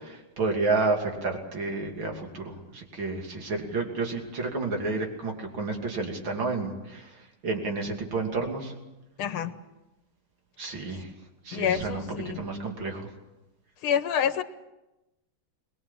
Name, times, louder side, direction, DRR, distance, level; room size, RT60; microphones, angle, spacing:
voice 1, 0.0-7.2 7.4-8.7 10.6-11.1 11.5-13.1, right 3 dB, 65° right, 2 dB, 3.6 m, -30 dB
voice 2, 9.2-9.5 11.5-12.4 13.8-14.4, left 8 dB, 90° left, 11 dB, 2.0 m, -27 dB
23.0 x 20.5 x 7.5 m, 0.98 s
omnidirectional pair, 2.3 m